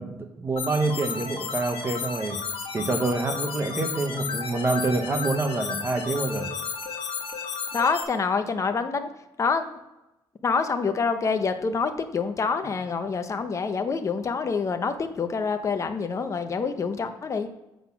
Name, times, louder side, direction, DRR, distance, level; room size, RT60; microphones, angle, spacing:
voice 1, 0.0-2.4 2.7-6.5, right 3 dB, 25° right, 5 dB, 0.9 m, -27 dB
sound 1, 0.6-8.0, left 6 dB, 80° left, 1.4 m, -33 dB
voice 2, 7.7-9.1 9.4-9.6 10.4-17.5, left 5 dB, 35° left, 8 dB, 0.8 m, -26 dB
7.8 x 4.0 x 5.8 m, 0.95 s
cardioid pair, 115°, 9 cm